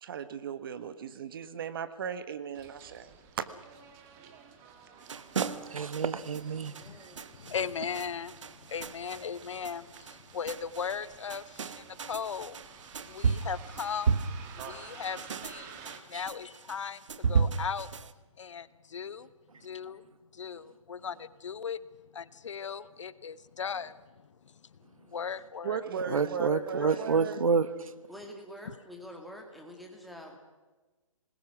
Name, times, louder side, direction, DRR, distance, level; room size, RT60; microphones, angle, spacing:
voice 1, 0.0-3.4 25.6-27.4, right 8 dB, 40° right, 1.4 m, -37 dB
Bus, 2.5-16.0, right 6 dB, 20° right, 1.8 m, -52 dB
sound 1, 5.0-18.1, right 5 dB, 65° right, 1.2 m, -34 dB
voice 2, 5.1-6.7 13.2-13.4 16.1-16.2 26.1-27.9, right 5 dB, 80° right, 1.4 m, -29 dB
voice 3, 6.7-7.3 25.7-27.2 28.1-30.4, equal, ahead, 2.3 m, -48 dB
voice 4, 7.4-12.6 13.1-14.1 14.6-17.9 18.4-19.3 19.6-20.0 20.3-21.8 22.1-24.0 24.4-24.5 25.1-27.0 28.7-28.8, left 6 dB, 60° left, 0.9 m, -38 dB
26.0 x 20.5 x 6.1 m
hypercardioid pair, 160°, 17 cm